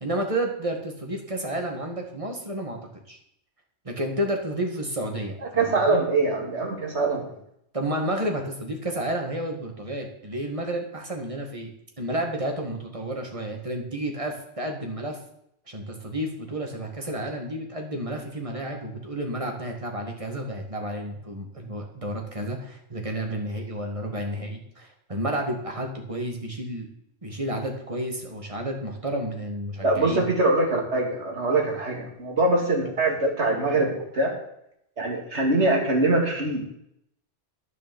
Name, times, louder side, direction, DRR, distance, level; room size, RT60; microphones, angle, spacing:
voice 1, 0.0-2.8 3.1-3.2 3.9-6.0 7.7-11.7 12.0-15.2 15.7-26.9 27.2-30.3, right 1 dB, 25° right, 2 dB, 2.0 m, -31 dB
voice 2, 5.6-7.2 29.8-34.3 35.0-36.6, right 2 dB, 65° right, 0 dB, 2.7 m, -23 dB
10.5 x 7.0 x 7.1 m, 0.75 s
omnidirectional pair, 1.2 m